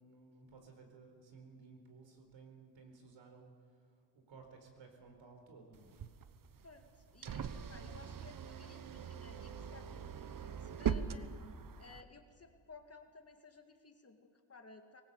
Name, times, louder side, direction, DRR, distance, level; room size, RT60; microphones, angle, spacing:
voice 1, 0.0-3.5 3.8-3.9 4.1-5.9, right 4 dB, 65° right, 4 dB, 4.5 m, -57 dB
sound 1, 5.7-12.0, right 7 dB, 40° right, 1.1 m, -41 dB
voice 2, 6.6-11.3 11.8-15.0, left 4 dB, 30° left, 5 dB, 2.0 m, -57 dB
20.0 x 18.5 x 8.2 m, 2.1 s
cardioid pair, 85°, 49 cm